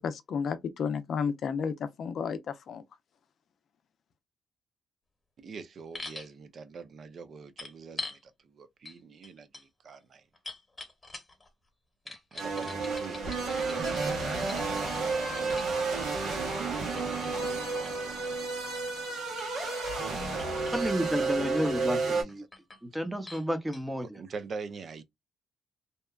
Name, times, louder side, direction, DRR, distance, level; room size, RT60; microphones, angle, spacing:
voice 1, 0.0-2.8, left 6 dB, 60° left, 0.5 m, -32 dB
voice 2, 5.4-10.2 12.3-14.5 15.4-16.3 16.7-18.7 21.0-22.2 24.2-25.0, right 5 dB, 55° right, 0.5 m, -45 dB
sound 1, 5.9-6.3 7.6-8.2 8.8-9.0 9.2-11.5 12.1-15.7 16.6-20.1 20.4-21.0 21.4-21.9 22.3-22.8 23.3-23.4 23.7-23.8, left 3 dB, 20° left, 1.1 m, -45 dB
sound 2, 12.4-22.2, right 3 dB, 75° right, 1.3 m, -31 dB
voice 3, 20.7-22.4 22.8-24.2, equal, 10° right, 0.7 m, -31 dB
2.8 x 2.2 x 2.3 m
cardioid pair, 90°, 0 cm